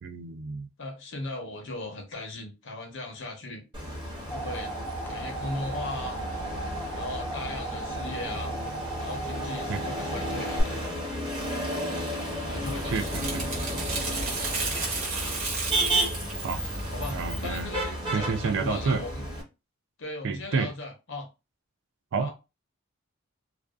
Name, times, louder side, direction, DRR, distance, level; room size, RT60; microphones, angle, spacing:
voice 1, 0.0-0.7 9.7-9.8 12.8-13.4 16.4-16.6 17.1-17.7 18.1-19.0 20.2-20.7 22.1-22.3, right 5 dB, 60° right, 0.3 m, -29 dB
voice 2, 0.8-3.6 4.3-4.7 5.1-6.2 7.0-8.5 9.0-10.9 12.5-13.1 16.9-19.3 20.0-21.3 22.2-22.3, left 2 dB, 60° left, 0.8 m, -37 dB
Motor vehicle (road), 3.7-19.4, right 1 dB, 25° right, 0.9 m, -33 dB
sound 1, 3.9-10.6, right 3 dB, 10° left, 0.5 m, -37 dB
sound 2, 12.2-17.7, right 3 dB, 80° right, 1.0 m, -33 dB
2.5 x 2.2 x 2.3 m
head